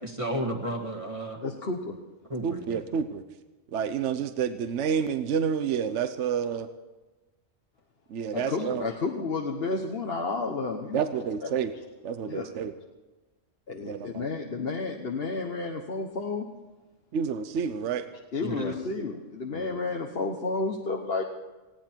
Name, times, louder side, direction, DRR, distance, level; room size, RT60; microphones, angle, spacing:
voice 1, 0.0-1.4 2.3-2.8 18.4-18.7, right 1 dB, 25° right, 2 dB, 1.8 m, -32 dB
voice 2, 1.4-2.0 8.3-11.0 11.4-11.5 12.2-12.5 13.7-16.5 18.3-21.2, left 3 dB, 50° left, 2 dB, 1.3 m, -31 dB
voice 3, 2.4-3.2 3.7-6.7 8.1-8.9 10.9-11.7 12.0-12.7 13.8-14.3 17.1-18.0 19.5-19.7, right 7 dB, 65° right, 10 dB, 1.1 m, -29 dB
19.5 x 16.5 x 4.5 m, 1.2 s
omnidirectional pair, 1.3 m